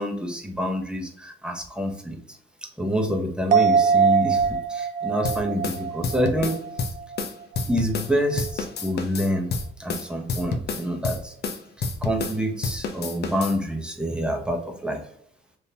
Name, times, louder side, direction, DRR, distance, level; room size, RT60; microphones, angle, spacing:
voice 1, 0.0-2.2 2.8-6.6 7.7-9.5 9.8-11.3 11.8-15.0, equal, 5° right, 3 dB, 0.8 m, -27 dB
sound 1, 3.5-7.2 7.5-7.6, right 6 dB, 40° right, 0.4 m, -23 dB
sound 2, 5.2-8.1 8.4-12.4 12.6-13.6, left 4 dB, 55° left, 0.6 m, -29 dB
3.6 x 2.7 x 2.8 m, 0.66 s
cardioid pair, 90°, 20 cm